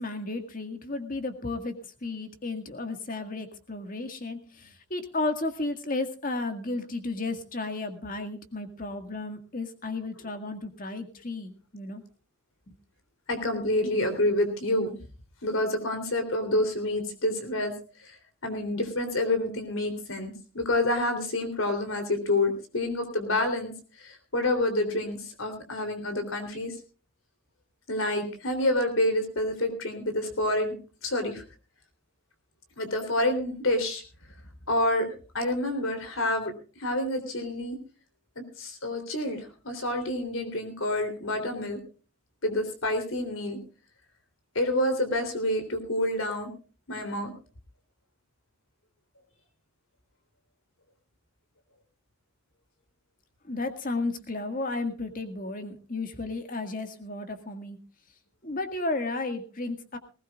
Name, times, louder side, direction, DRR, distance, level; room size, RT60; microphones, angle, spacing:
voice 1, 0.0-1.7 2.0-12.0 12.7-12.8 53.4-57.8 58.4-60.0, left 2 dB, 40° left, 7 dB, 1.9 m, -33 dB
voice 2, 13.3-15.0 15.4-17.7 18.0-18.2 18.4-23.7 24.0-26.7 27.9-30.7 31.0-31.4 32.8-34.0 34.7-36.5 36.8-37.8 38.3-41.8 42.4-43.6 44.5-46.5 46.9-47.3, left 1 dB, 80° left, 7 dB, 3.4 m, -28 dB
20.0 x 18.5 x 2.4 m, 0.35 s
head